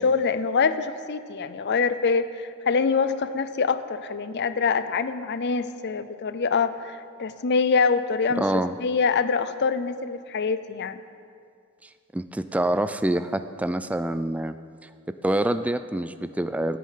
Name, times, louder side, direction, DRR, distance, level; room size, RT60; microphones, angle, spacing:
voice 1, 0.0-8.4 8.8-11.0, left 5 dB, 50° left, 12 dB, 0.6 m, -25 dB
voice 2, 8.4-8.8 12.1-14.5 15.2-16.8, right 1 dB, 5° right, 11 dB, 0.3 m, -26 dB
17.0 x 9.5 x 5.7 m, 2.3 s
head